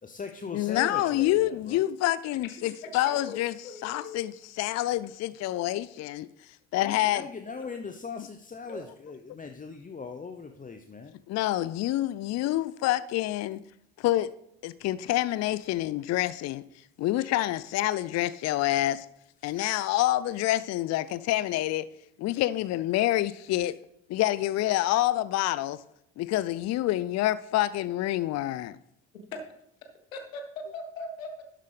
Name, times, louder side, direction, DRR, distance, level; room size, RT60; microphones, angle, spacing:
voice 1, 0.0-1.8 7.1-11.1 19.4-19.6, left 5 dB, 20° left, 0.8 m, -40 dB
voice 2, 0.5-3.5 3.8-4.3 4.6-6.3 6.7-7.3 11.3-13.6 14.0-14.3 14.6-16.6 17.0-19.1 19.4-21.9 22.2-23.7 24.1-25.8 26.2-28.8, left 14 dB, 45° left, 0.5 m, -27 dB
voice 3, 2.6-4.2 7.6-7.8 8.7-8.9 30.1-31.4, left 3 dB, 80° left, 1.3 m, -40 dB
12.0 x 7.5 x 3.4 m
figure-of-eight pair, 50°, 39 cm